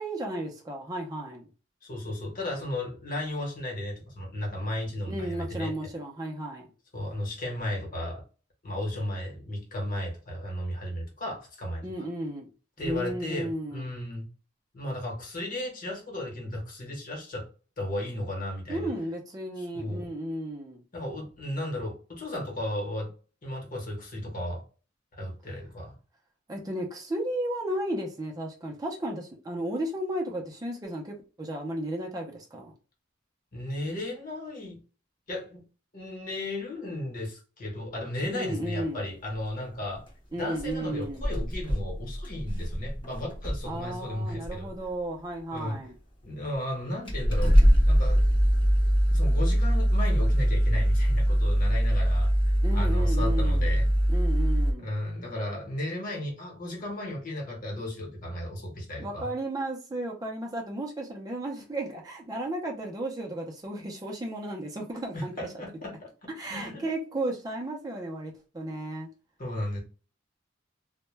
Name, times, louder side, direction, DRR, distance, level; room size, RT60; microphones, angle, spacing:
voice 1, 0.0-1.5 5.1-6.7 11.8-12.5 12.8-13.9 18.7-20.8 26.5-32.7 38.3-39.1 40.3-41.3 43.6-45.9 52.6-53.7 54.1-54.9 59.0-65.5 66.4-69.1, right 1 dB, 20° right, 0.4 m, -34 dB
voice 2, 1.8-5.7 6.9-8.2 8.6-12.1 12.8-14.3 14.7-17.5 17.8-18.9 19.7-20.1 20.9-23.1 23.4-24.6 25.1-25.9 33.5-34.8 35.3-35.6 35.9-40.1 40.3-44.7 45.5-45.8 46.2-47.6 47.8-48.2 49.1-52.3 52.7-53.9 54.8-59.3 65.1-66.1 66.4-66.8 69.4-69.8, left 1 dB, 45° left, 1.0 m, -34 dB
sound 1, 39.9-40.1 40.6-40.7 41.0-43.8 44.3-44.7 45.6-45.7 46.5-46.6 47.1-54.7, equal, 25° left, 0.7 m, -23 dB
2.1 x 2.1 x 3.1 m
head